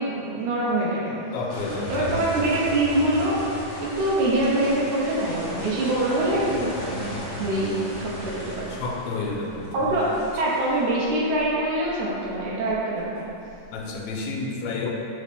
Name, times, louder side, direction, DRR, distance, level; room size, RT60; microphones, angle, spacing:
voice 1, 0.0-1.2 1.9-3.4 3.8-8.7 9.7-10.1 10.3-13.2, right 1 dB, 70° right, -6 dB, 2.0 m, -24 dB
voice 2, 1.3-2.1 8.7-10.0 13.7-14.9, left 3 dB, 80° left, -1 dB, 2.6 m, -30 dB
sound 1, 1.5-14.1, left 1 dB, 65° left, 1.4 m, -36 dB
6.6 x 4.8 x 3.5 m, 2.6 s
omnidirectional pair, 4.4 m